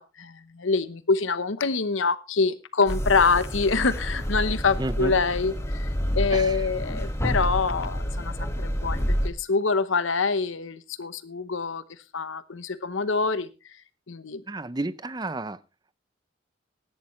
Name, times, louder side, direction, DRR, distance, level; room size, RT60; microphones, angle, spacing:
voice 1, 0.0-5.9 6.1-11.8 12.1-13.5 14.1-14.4, left 4 dB, 85° left, 0.9 m, -25 dB
sound 1, 2.9-9.3, equal, 15° left, 1.6 m, -28 dB
voice 2, 4.8-5.1 6.3-6.7 14.5-15.6, right 2 dB, 20° right, 0.6 m, -31 dB
16.0 x 11.0 x 3.2 m
head